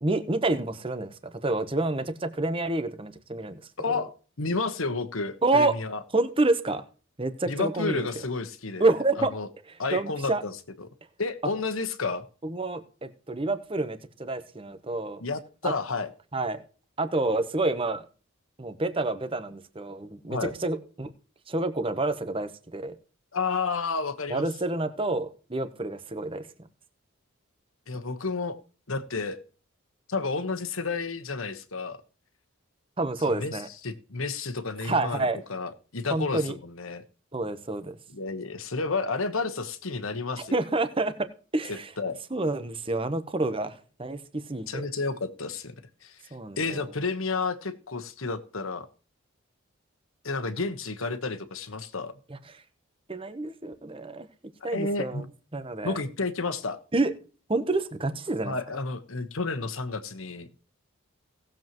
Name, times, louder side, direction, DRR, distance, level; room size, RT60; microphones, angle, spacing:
voice 1, 0.0-3.6 3.9-4.0 5.4-5.7 6.1-6.8 7.2-8.2 8.8-9.3 9.9-10.4 12.4-15.2 15.6-15.7 16.3-16.6 17.0-18.0 18.6-21.1 21.5-22.9 24.3-26.5 33.0-33.7 34.8-35.4 36.1-36.6 37.3-38.0 40.5-41.1 41.5-41.9 42.3-44.9 46.3-46.8 52.3-52.4 53.1-54.3 54.6-55.2 55.5-56.0 56.9-57.1 57.5-58.5, right 2 dB, 25° right, 10 dB, 0.9 m, -28 dB
voice 2, 3.8-6.0 7.5-9.5 9.8-10.9 11.2-12.2 15.2-16.1 20.3-20.5 23.3-24.5 27.9-28.6 28.9-29.4 30.1-32.0 33.2-37.0 38.1-40.6 41.7-42.2 44.7-45.7 46.0-46.2 46.6-48.9 50.2-52.1 54.7-55.3 55.8-56.8 58.4-60.5, left 4 dB, 70° left, 9 dB, 1.2 m, -31 dB
18.0 x 7.5 x 3.0 m, 0.38 s
head